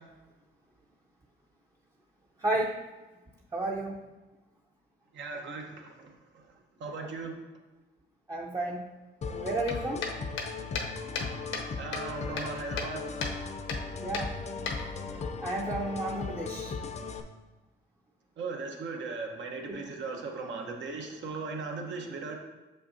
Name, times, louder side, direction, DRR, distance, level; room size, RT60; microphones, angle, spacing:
voice 1, 2.4-2.8 3.5-4.0 8.3-8.9 9.3-10.0 14.0-14.3 15.4-16.7 19.7-19.8, right 2 dB, 15° right, -2 dB, 0.6 m, -32 dB
voice 2, 5.1-6.4 6.8-7.4 9.2-9.3 10.6-10.7 11.8-13.1 18.4-22.4, right 4 dB, 70° right, 2 dB, 1.0 m, -38 dB
sound 1, 9.2-17.2, left 4 dB, 35° left, 0.5 m, -37 dB
sound 2, 9.7-11.7 11.9-12.9 13.2-13.4 13.7-13.8 14.1-15.2, left 4 dB, 80° left, 0.9 m, -35 dB
6.6 x 5.5 x 2.7 m, 1.1 s
cardioid pair, 90°, 20 cm